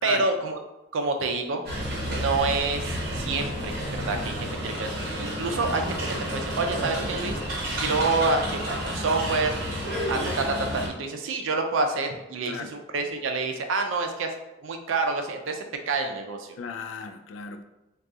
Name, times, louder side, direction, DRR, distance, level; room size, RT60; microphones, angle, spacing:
voice 1, 0.0-0.6 0.9-1.6 2.1-6.0 6.3-9.5 10.1-14.3 14.6-16.5, right 3 dB, 90° right, 5 dB, 0.4 m, -28 dB
sound 1, 1.7-10.9, equal, 55° right, 0.9 m, -30 dB
voice 2, 16.6-17.6, left 5 dB, 90° left, 7 dB, 0.3 m, -36 dB
2.6 x 2.3 x 3.5 m, 0.96 s
head